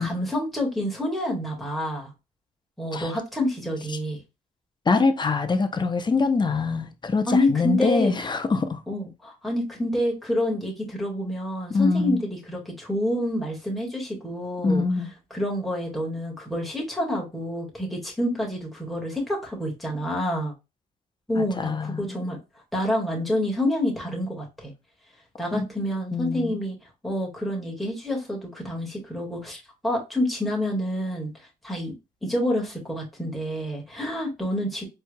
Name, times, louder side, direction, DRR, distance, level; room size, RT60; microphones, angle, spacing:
voice 1, 0.0-2.1 2.8-4.2 7.3-8.2 8.9-14.8 15.3-20.5 21.3-22.4 22.7-24.7 25.4-26.8 27.0-31.3 31.6-31.9 32.2-34.8, left 1 dB, ahead, 1.9 m, -28 dB
voice 2, 4.9-8.8 11.7-12.2 14.6-15.1 21.4-22.2 25.5-25.7 26.1-26.6, left 4 dB, 30° left, 0.8 m, -24 dB
4.4 x 3.3 x 2.3 m
supercardioid pair, 65°, 16 cm